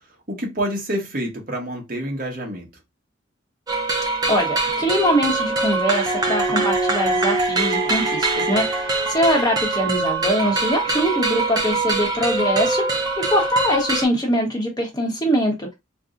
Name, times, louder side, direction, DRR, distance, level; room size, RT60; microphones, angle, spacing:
voice 1, 0.3-2.7, right 1 dB, 45° right, 0.9 m, -27 dB
sound 1, 3.7-14.0, right 3 dB, 20° right, 0.4 m, -23 dB
voice 2, 4.3-15.7, equal, 20° left, 0.7 m, -22 dB
2.5 x 2.0 x 3.6 m
head